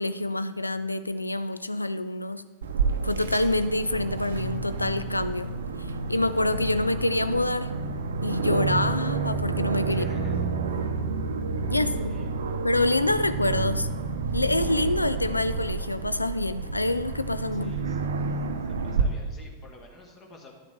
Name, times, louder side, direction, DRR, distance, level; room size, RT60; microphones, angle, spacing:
voice 1, 0.0-2.4 3.0-5.5 6.1-7.7 8.2-10.1 11.7-12.1 12.6-13.9 14.3-17.8, left 2 dB, 85° left, 13 dB, 0.4 m, -26 dB
Aircraft, 2.6-19.0, right 4 dB, 65° right, 0.7 m, -30 dB
voice 2, 9.9-10.4 11.7-12.3 17.5-18.0 18.8-20.6, left 2 dB, 25° left, 1 dB, 1.4 m, -49 dB
10.5 x 6.7 x 3.6 m, 1.3 s
figure-of-eight pair, 90°, 0 cm